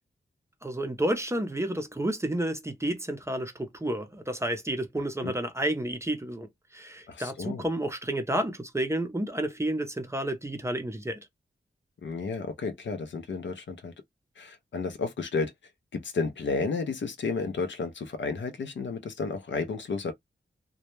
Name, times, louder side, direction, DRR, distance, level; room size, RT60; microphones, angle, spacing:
voice 1, 0.6-11.2, right 1 dB, 15° right, 0.5 m, -30 dB
voice 2, 7.1-7.6 12.0-13.9 14.4-15.5 15.9-20.1, left 4 dB, 75° left, 0.5 m, -32 dB
2.1 x 2.0 x 3.0 m
wide cardioid pair, 110°, 20 cm